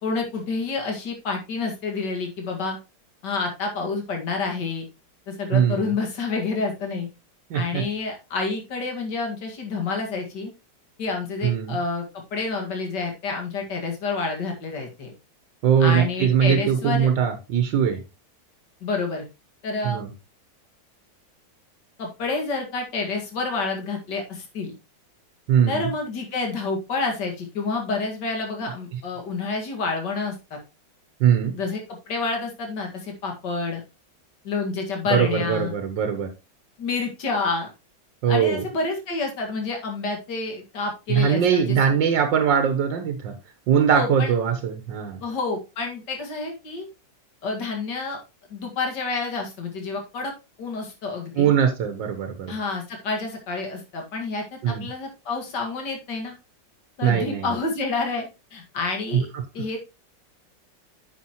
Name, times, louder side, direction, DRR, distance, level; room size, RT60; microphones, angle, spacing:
voice 1, 0.0-2.8 3.2-4.9 5.3-7.1 7.5-10.5 11.0-12.1 12.3-15.1 15.8-17.1 18.8-19.2 19.6-20.0 22.0-24.7 25.7-30.6 31.5-31.8 32.1-33.8 34.4-35.7 36.8-37.7 38.3-41.8 43.9-44.3 45.2-46.9 47.4-48.2 48.5-50.3 50.6-51.5 52.5-56.3 57.0-59.3 59.5-59.8, left 4 dB, 70° left, 2 dB, 2.6 m, -28 dB
voice 2, 5.5-5.9 7.5-7.8 11.4-11.8 15.6-18.0 19.8-20.1 25.5-25.9 31.2-31.6 35.1-36.3 38.2-38.6 41.1-43.3 43.7-45.2 51.3-52.5 54.6-54.9 57.0-57.5 59.1-59.2, right 8 dB, 80° right, 7 dB, 1.7 m, -21 dB
9.5 x 7.1 x 3.0 m, 0.27 s
omnidirectional pair, 1.9 m